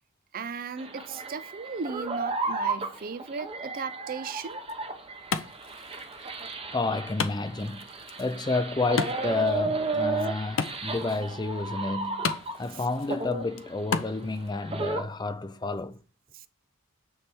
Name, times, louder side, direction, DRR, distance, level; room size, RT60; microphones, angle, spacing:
voice 1, 0.3-4.6 12.7-12.9 16.3-16.5, right 5 dB, 45° right, 0.5 m, -37 dB
sound 1, 0.8-12.8 13.1-15.0, right 3 dB, 25° right, 1.0 m, -33 dB
Wood, 4.5-14.5, left 5 dB, 65° left, 0.6 m, -37 dB
voice 2, 6.7-7.9 8.2-12.3 12.6-16.0, left 3 dB, 20° left, 0.4 m, -30 dB
9.6 x 3.4 x 4.5 m
head